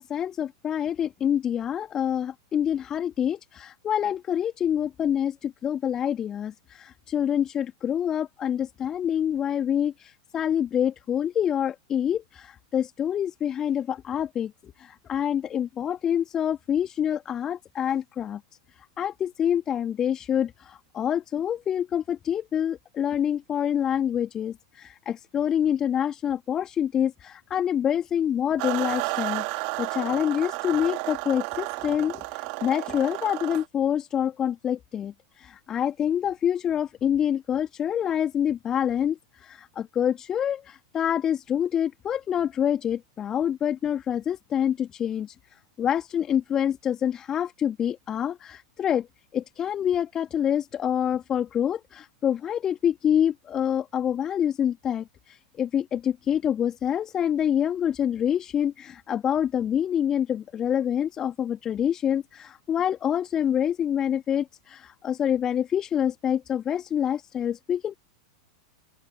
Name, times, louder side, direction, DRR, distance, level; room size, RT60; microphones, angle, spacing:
voice 1, 0.0-18.4 18.8-49.1 49.3-67.9, left 9 dB, 25° left, 2.5 m, -26 dB
sound 1, 28.6-33.6, right 36 dB, 45° right, 3.0 m, -32 dB
open air
figure-of-eight pair, 90°, 2 cm